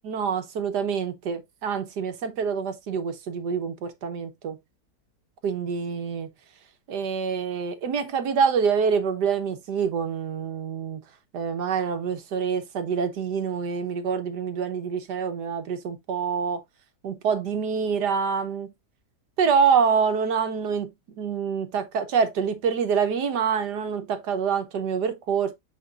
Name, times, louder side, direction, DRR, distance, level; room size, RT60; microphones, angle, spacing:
voice 1, 0.0-4.6 5.4-6.3 6.9-11.0 11.3-16.6 17.0-18.7 19.4-20.9 21.2-25.5, right 6 dB, 85° right, 1.7 m, -26 dB
7.0 x 6.0 x 2.5 m
omnidirectional pair, 1.7 m